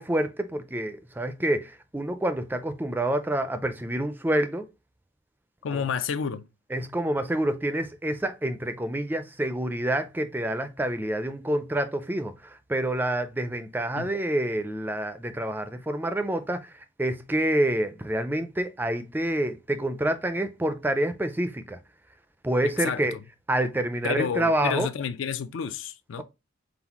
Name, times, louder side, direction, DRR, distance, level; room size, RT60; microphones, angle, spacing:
voice 1, 0.0-4.7 5.7-5.8 6.7-21.8 22.4-23.1 23.5-24.9, right 1 dB, 10° right, 0.3 m, -27 dB
voice 2, 5.6-6.5 13.9-14.1 22.6-23.2 24.0-26.2, left 7 dB, 75° left, 0.4 m, -30 dB
4.0 x 3.9 x 2.9 m
head